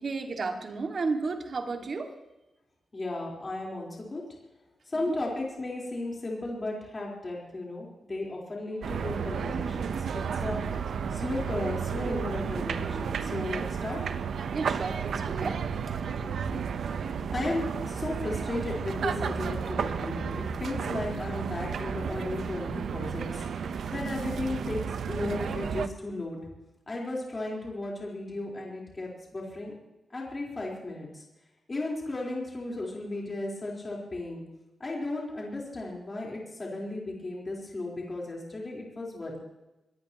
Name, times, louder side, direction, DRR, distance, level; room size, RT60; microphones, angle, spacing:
voice 1, 0.0-2.1 5.0-5.2 14.5-15.6, right 4 dB, 45° right, 4 dB, 2.1 m, -33 dB
voice 2, 2.9-4.2 4.9-14.0 15.4-15.5 16.2-16.4 17.3-23.4 23.9-26.4 26.9-29.7 30.1-31.2 31.7-34.4 34.8-39.4, left 2 dB, 25° left, -3 dB, 4.2 m, -35 dB
sound 1, 8.8-25.9, right 6 dB, 70° right, 0.9 m, -32 dB
23.5 x 18.5 x 3.0 m, 0.98 s
wide cardioid pair, 160°, 0 cm